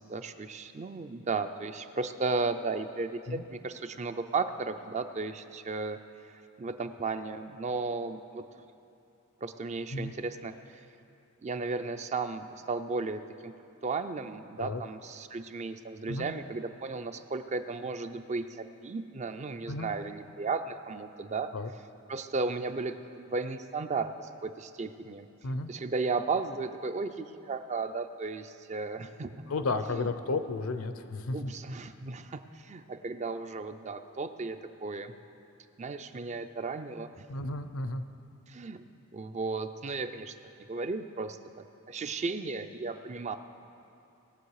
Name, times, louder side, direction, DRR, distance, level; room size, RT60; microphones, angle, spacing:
voice 1, 0.0-6.0 6.6-8.4 9.4-10.8 11.4-13.5 13.8-21.5 22.1-25.3 25.7-29.3 29.9-30.4 31.3-35.2 35.8-37.2 38.5-38.8 39.1-40.3 40.7-43.4, right 4 dB, 35° right, 9 dB, 0.4 m, -35 dB
voice 2, 29.5-31.5 37.3-38.0, left 3 dB, 75° left, 10 dB, 0.6 m, -33 dB
19.0 x 7.3 x 4.8 m, 2.7 s
head